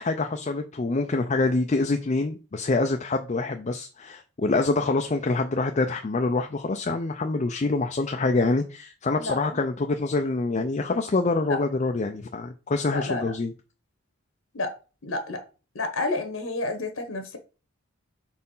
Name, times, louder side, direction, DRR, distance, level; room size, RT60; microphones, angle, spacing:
voice 1, 0.0-13.5, left 3 dB, 35° left, 0.4 m, -26 dB
voice 2, 9.1-9.6 11.5-11.6 12.9-13.3 14.5-14.7 15.0-15.4 15.7-17.4, left 2 dB, 75° left, 1.2 m, -30 dB
4.4 x 4.2 x 5.4 m
head